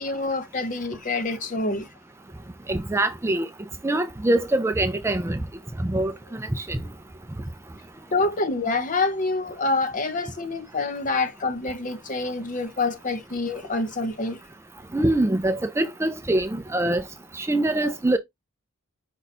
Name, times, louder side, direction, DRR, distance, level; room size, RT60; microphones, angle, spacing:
voice 1, 0.0-1.9 8.1-14.4, left 3 dB, 40° left, 0.8 m, -26 dB
voice 2, 2.7-3.5 3.8-5.4 5.8-6.8 14.9-17.0 17.3-18.2, right 1 dB, 15° right, 0.4 m, -24 dB
5.3 x 2.3 x 4.2 m
head